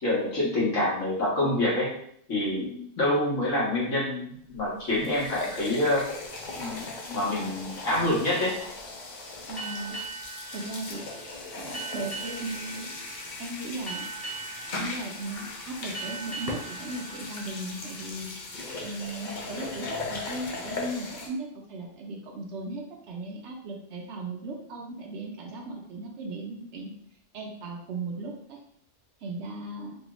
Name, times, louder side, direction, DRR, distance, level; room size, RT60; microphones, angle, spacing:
voice 1, 0.0-1.9 2.3-2.6 3.0-6.0 6.6-8.5, left 1 dB, 70° left, -6 dB, 1.6 m, -26 dB
voice 2, 2.6-2.9 9.5-10.0 10.5-11.0 11.5-12.8 13.4-14.0 14.7-18.3 18.8-26.9 27.3-28.6 29.2-30.0, right 2 dB, 65° right, 1 dB, 0.8 m, -37 dB
sound 1, 4.6-4.7 4.9-21.3, left 3 dB, 55° left, 0.5 m, -38 dB
sound 2, 9.6-18.7, right 5 dB, 25° left, 0.7 m, -41 dB
3.4 x 2.3 x 2.9 m, 0.66 s
omnidirectional pair, 1.3 m